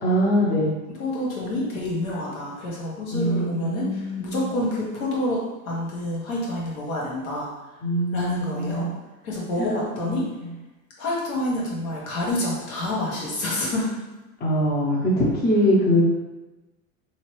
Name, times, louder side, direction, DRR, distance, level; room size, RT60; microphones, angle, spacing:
voice 1, 0.0-0.7 3.1-4.4 7.8-8.9 9.6-9.8 10.0-10.1 14.4-16.0, equal, 25° left, -4 dB, 0.8 m, -22 dB
voice 2, 0.9-5.4 5.6-7.5 8.1-8.9 9.2-10.2 11.0-13.9, left 1 dB, 80° left, -5 dB, 1.4 m, -28 dB
3.1 x 2.8 x 3.1 m, 1.1 s
hypercardioid pair, 110°, 42 cm